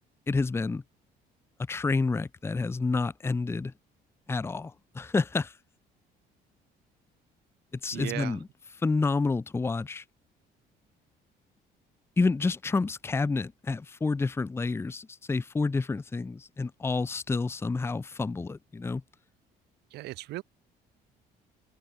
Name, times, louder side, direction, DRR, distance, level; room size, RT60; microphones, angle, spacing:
voice 1, 0.3-0.8 1.7-3.7 4.3-5.5 7.8-8.4 8.8-10.0 12.2-19.0, left 3 dB, 15° left, 0.6 m, -29 dB
voice 2, 7.9-8.4 19.9-20.4, right 17 dB, 80° right, 1.1 m, -36 dB
cardioid pair, 110°, 17 cm